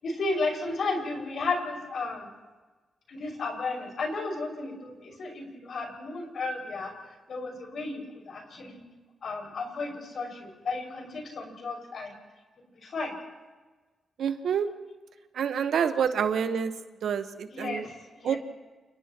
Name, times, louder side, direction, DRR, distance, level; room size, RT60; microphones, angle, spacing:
voice 1, 0.0-2.3 3.1-6.9 7.3-8.8 9.2-12.1 12.7-13.1 17.5-18.4, left 3 dB, 65° left, 1 dB, 6.1 m, -33 dB
voice 2, 14.2-14.7 15.3-16.7 17.0-17.9 18.2-18.4, right 7 dB, 80° right, 9 dB, 1.2 m, -27 dB
29.5 x 29.0 x 3.0 m, 1.3 s
cardioid pair, 90°, 0 cm